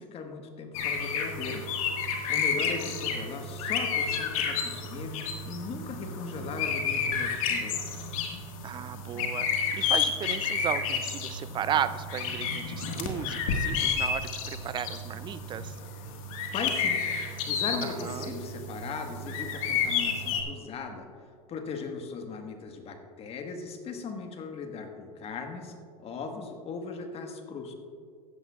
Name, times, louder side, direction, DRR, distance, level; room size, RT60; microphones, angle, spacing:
voice 1, 0.0-1.6 2.0-8.1 16.5-21.1 21.5-25.7 26.0-27.7, left 5 dB, 35° left, 5 dB, 1.4 m, -38 dB
sound 1, 0.7-20.4, left 5 dB, 70° left, 1.6 m, -31 dB
voice 2, 2.3-2.8 8.6-15.7 17.8-18.3, right 9 dB, 25° right, 14 dB, 0.4 m, -35 dB
15.0 x 11.0 x 2.4 m, 2.1 s
hypercardioid pair, 110°, 18 cm